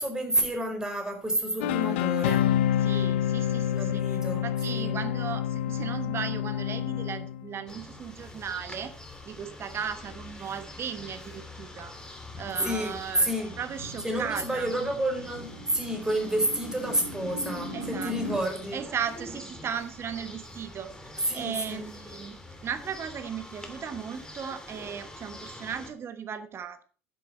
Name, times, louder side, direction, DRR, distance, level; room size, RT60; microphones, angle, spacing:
voice 1, 0.0-2.4 3.8-5.0 12.6-13.5 14.0-18.8 21.3-21.8, right 1 dB, 10° right, 3 dB, 4.7 m, -30 dB
sound 1, 1.6-7.5, left 11 dB, 70° left, 0.7 m, -27 dB
voice 2, 2.8-9.0 9.3-14.7 17.7-18.1 18.4-26.8, right 7 dB, 40° right, 11 dB, 1.2 m, -37 dB
sound 2, 7.7-25.9, left 2 dB, 10° left, 2.6 m, -45 dB
sound 3, 12.5-18.5, equal, 90° left, 2.6 m, -40 dB
10.5 x 7.9 x 5.8 m, 0.40 s
figure-of-eight pair, 60°, 6 cm